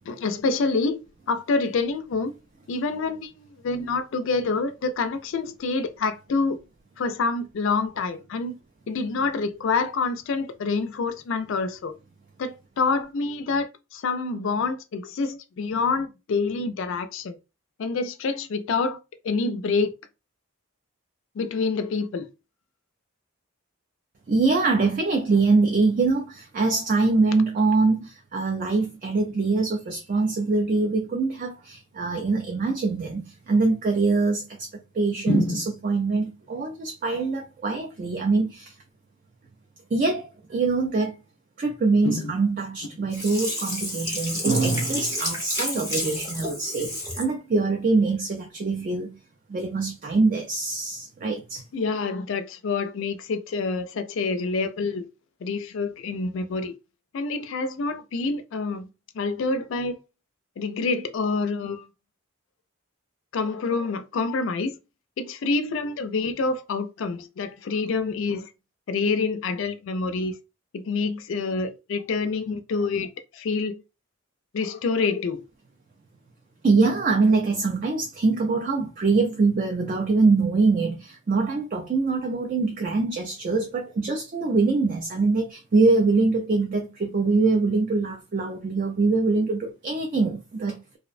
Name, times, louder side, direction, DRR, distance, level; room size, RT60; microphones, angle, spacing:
voice 1, 0.1-1.0 1.3-2.3 2.7-6.6 7.0-8.6 8.9-12.0 12.4-17.4 17.8-19.0 19.2-20.0 21.4-22.3 35.3-35.6 42.1-42.3 51.7-55.1 55.4-56.7 57.1-58.9 59.1-59.9 60.6-61.9 63.3-64.8 65.2-68.5 68.9-70.3 70.7-73.8 74.5-75.4, left 4 dB, 60° left, 0.3 m, -27 dB
voice 2, 24.3-34.7 34.9-38.7 39.9-41.2 41.6-49.2 49.5-51.6 76.6-91.0, right 3 dB, 35° right, 0.3 m, -23 dB
Sink (filling or washing), 43.1-47.3 47.7-47.8, left 1 dB, 10° right, 0.7 m, -30 dB
2.5 x 2.1 x 2.4 m
head